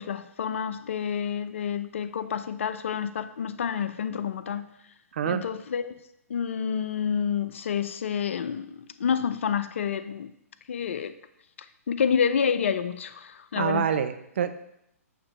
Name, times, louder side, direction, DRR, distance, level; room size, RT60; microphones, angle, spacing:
voice 1, 0.0-4.7 5.2-5.9 6.3-10.3 10.7-11.1 11.9-13.9, left 7 dB, 50° left, 13 dB, 0.3 m, -28 dB
voice 2, 13.6-14.5, right 8 dB, 50° right, 10 dB, 0.4 m, -26 dB
8.0 x 2.9 x 4.2 m, 0.78 s
figure-of-eight pair, 120°, 8 cm